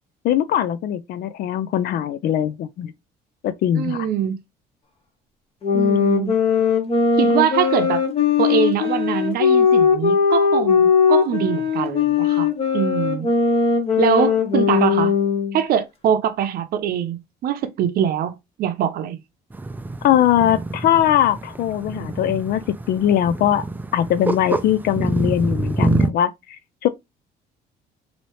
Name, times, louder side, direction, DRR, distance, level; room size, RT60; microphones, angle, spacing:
voice 1, 0.2-2.9 3.4-4.1 20.0-22.6 22.9-23.6 23.9-26.9, left 11 dB, 65° left, 0.4 m, -20 dB
voice 2, 3.7-4.3 5.7-6.3 7.2-8.0 8.4-12.5 12.7-13.3 14.0-15.1 15.5-19.2, right 9 dB, 65° right, 0.7 m, -23 dB
sound 1, 5.6-15.6, left 6 dB, 35° left, 1.2 m, -19 dB
sound 2, 19.5-26.1, right 2 dB, 10° right, 0.3 m, -26 dB
4.3 x 2.8 x 3.1 m
cardioid pair, 110°, 17 cm